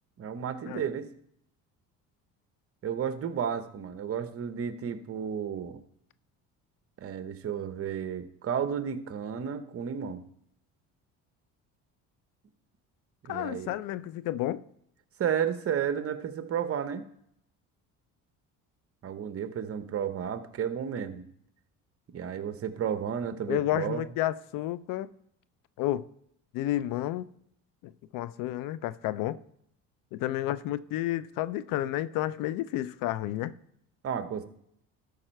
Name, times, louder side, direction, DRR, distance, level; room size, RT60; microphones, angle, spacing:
voice 1, 0.2-1.1 2.8-5.8 7.0-10.2 13.2-13.7 15.2-17.0 19.0-21.3 22.1-24.0 34.0-34.4, right 8 dB, 45° right, 0.9 m, -32 dB
voice 2, 13.3-14.6 23.5-25.1 25.8-26.0 26.5-27.3 27.8-29.4 30.1-33.5, left 14 dB, 75° left, 0.5 m, -31 dB
12.5 x 5.4 x 4.5 m
cardioid pair, 100°, 34 cm